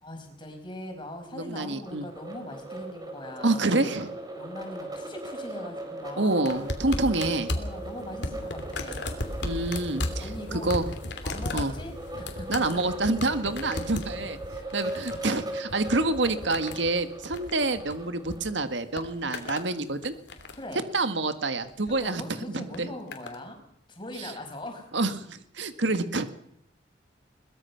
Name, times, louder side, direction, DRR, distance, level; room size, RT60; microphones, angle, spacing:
voice 1, 0.0-3.9 4.4-6.7 7.1-7.3 7.6-9.2 10.2-10.8 11.2-12.8 14.5-14.7 19.2-19.9 20.5-20.9 22.0-23.6 23.9-24.9, left 1 dB, 25° left, 4 dB, 5.3 m, -41 dB
voice 2, 1.3-2.1 3.4-4.2 6.2-7.5 9.4-10.9 11.5-11.7 12.5-14.4 14.7-20.1 20.9-22.2 22.5-22.9 24.2-24.3 24.9-26.3, right 2 dB, 75° right, 9 dB, 1.7 m, -27 dB
sound 1, 1.8-18.5, right 1 dB, 20° right, 4.4 m, -39 dB
sound 2, 6.4-18.4 18.7-19.7 20.0-20.7 21.7-22.0 22.7-23.4 24.3-24.4, left 1 dB, 65° left, 3.0 m, -36 dB
22.5 x 20.0 x 5.9 m, 0.72 s
head